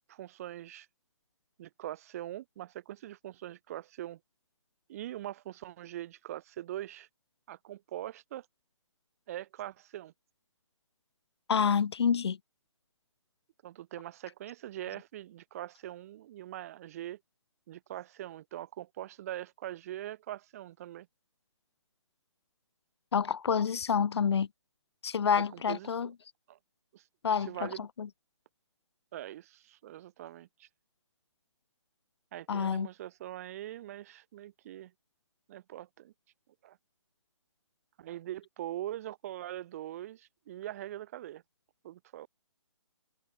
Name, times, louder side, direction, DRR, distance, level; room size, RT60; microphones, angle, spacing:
voice 1, 0.1-0.9 1.6-4.2 4.9-7.1 7.5-8.5 9.3-10.1 13.6-17.2 17.7-21.1 25.4-26.1 26.5-26.6 26.9-27.0 27.5-27.9 29.1-30.7 32.3-34.9 35.5-36.1 36.6-36.8 38.0-41.4 41.8-42.3, right 13 dB, 30° right, 3.3 m, -42 dB
voice 2, 11.5-12.4 23.1-24.5 25.0-26.1 27.2-28.1 32.5-32.9, left 7 dB, 55° left, 1.0 m, -28 dB
hypercardioid pair, 165°, 16 cm